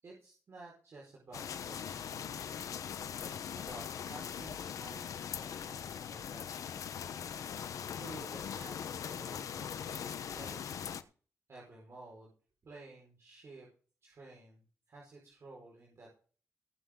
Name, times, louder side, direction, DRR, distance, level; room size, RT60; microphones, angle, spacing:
voice 1, 0.0-2.3 3.1-7.0 7.9-10.8 11.5-12.3 12.6-13.7 14.0-16.1, right 2 dB, 55° right, -3 dB, 5.1 m, -53 dB
sound 1, 1.3-11.0, left 8 dB, 80° left, 0.9 m, -41 dB
19.5 x 7.8 x 3.9 m, 0.40 s
cardioid pair, 100°, 6 cm